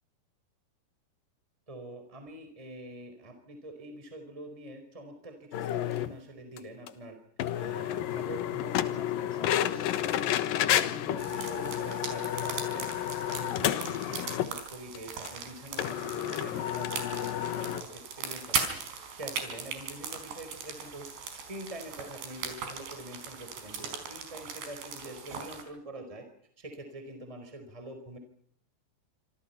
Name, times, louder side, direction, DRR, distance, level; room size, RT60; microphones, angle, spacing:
voice 1, 1.7-7.2 7.5-12.9 13.3-18.8 19.1-21.1 21.3-26.2 26.6-28.2, right 1 dB, 10° right, 6 dB, 4.2 m, -45 dB
sound 1, 5.5-6.1 6.6-6.7 6.9-7.0 7.4-14.6 15.0-15.1 15.3-15.4 15.8-17.8, left 12 dB, 65° left, 2.6 m, -31 dB
sound 2, 11.2-25.6, right 6 dB, 75° right, 6.6 m, -39 dB
27.0 x 26.5 x 5.7 m, 0.65 s
omnidirectional pair, 5.0 m